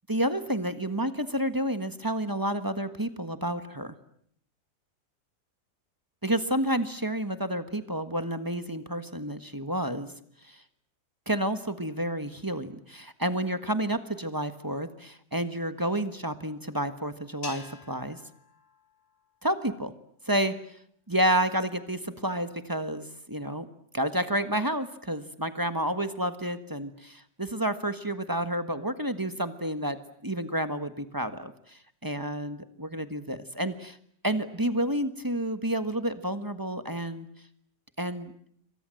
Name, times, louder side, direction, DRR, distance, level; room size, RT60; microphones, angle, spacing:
voice 1, 0.1-3.9 6.2-10.1 10.4-10.6 11.3-18.2 19.4-19.9 20.2-20.5 21.1-23.7 23.9-30.0 30.2-34.0 34.2-37.3 38.0-38.3, right 1 dB, 15° right, 10 dB, 1.4 m, -30 dB
sound 1, 17.4-19.9, left 3 dB, 70° left, 4.2 m, -47 dB
28.0 x 25.0 x 7.8 m, 0.68 s
omnidirectional pair, 1.7 m